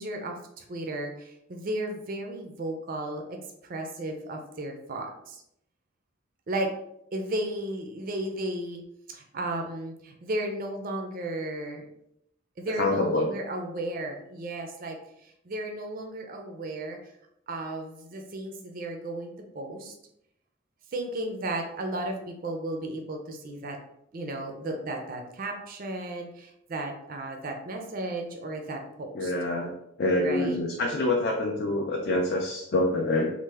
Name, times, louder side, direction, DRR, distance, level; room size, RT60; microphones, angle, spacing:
voice 1, 0.0-3.4 3.6-5.4 6.5-6.7 7.1-8.8 9.1-11.9 12.6-17.0 17.5-19.9 20.9-23.8 24.1-29.3 30.2-30.6, right 1 dB, 40° right, 3 dB, 0.4 m, -34 dB
voice 2, 12.8-13.3 29.1-29.7 30.0-33.3, left 2 dB, 50° left, 0 dB, 0.4 m, -26 dB
3.2 x 2.1 x 3.3 m, 0.77 s
head